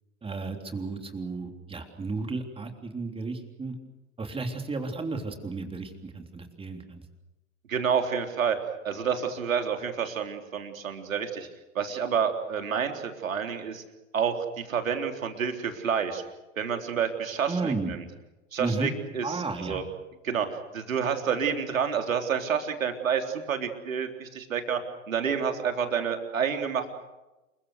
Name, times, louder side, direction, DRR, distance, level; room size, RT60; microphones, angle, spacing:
voice 1, 0.2-3.8 4.2-7.0 17.5-17.9 18.6-18.9 19.2-19.8, right 3 dB, 15° right, 5 dB, 3.5 m, -33 dB
voice 2, 7.7-8.6 8.8-11.5 11.8-13.8 14.1-16.2 16.6-18.1 18.5-19.8 20.2-20.5 20.7-24.8 25.1-26.9, right 7 dB, 75° right, 5 dB, 3.7 m, -29 dB
28.5 x 23.0 x 6.6 m, 1.0 s
figure-of-eight pair, 95°, 41 cm